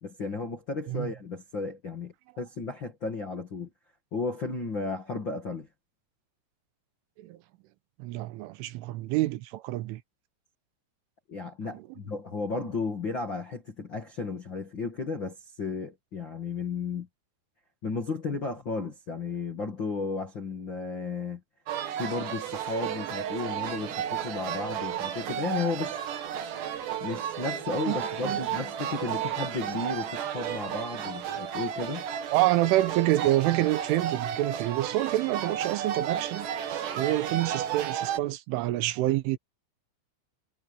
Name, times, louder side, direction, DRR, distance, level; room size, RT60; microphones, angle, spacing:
voice 1, 0.0-3.7 4.1-5.7 11.3-17.1 17.8-21.4 22.0-26.0 27.0-32.1, left 4 dB, 45° left, 1.6 m, -34 dB
voice 2, 8.0-10.0 11.7-11.8 27.9-28.5 32.3-36.5 37.0-39.4, right 16 dB, 80° right, 3.4 m, -27 dB
sound 1, 21.7-38.2, right 9 dB, 65° right, 4.3 m, -33 dB
omnidirectional pair, 5.6 m